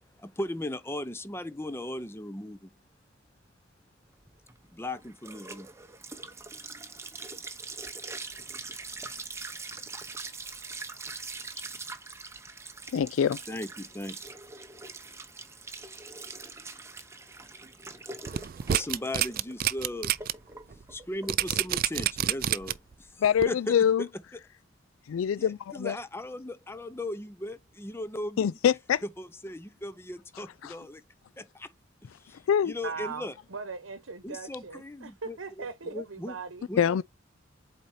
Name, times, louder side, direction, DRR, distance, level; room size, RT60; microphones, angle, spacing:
voice 1, 0.4-2.6 4.8-5.7 13.5-14.2 18.7-20.1 20.9-22.7 23.5-24.1 25.4-28.6 29.0-31.0 32.6-33.3 34.2-36.4 36.7-36.8, left 1 dB, 10° left, 0.6 m, -37 dB
sound 1, 4.2-23.3, right 3 dB, 15° right, 0.9 m, -43 dB
voice 2, 12.9-13.4 23.2-24.0 25.1-26.0 28.4-29.0 30.6-30.7 32.5-32.7 36.8-37.0, left 8 dB, 90° left, 0.3 m, -24 dB
sound 2, 18.3-20.3 20.7-20.8 21.3-22.9 23.4-23.5, right 11 dB, 45° right, 0.4 m, -27 dB
voice 3, 32.8-36.7, right 5 dB, 80° right, 0.9 m, -39 dB
8.0 x 4.3 x 2.7 m
head